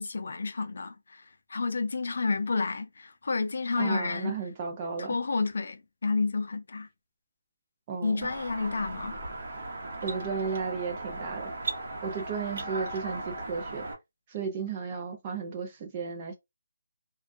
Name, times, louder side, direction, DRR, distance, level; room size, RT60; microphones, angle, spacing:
voice 1, 0.0-4.4 5.0-6.9 8.0-9.1, left 4 dB, 60° left, 0.4 m, -30 dB
voice 2, 3.8-5.2 7.9-8.3 10.0-11.5 12.0-13.9 14.3-16.3, right 5 dB, 20° right, 0.5 m, -34 dB
sound 1, 8.2-13.9, right 2 dB, 50° right, 0.8 m, -37 dB
2.2 x 2.2 x 2.5 m
hypercardioid pair, 170°, 0 cm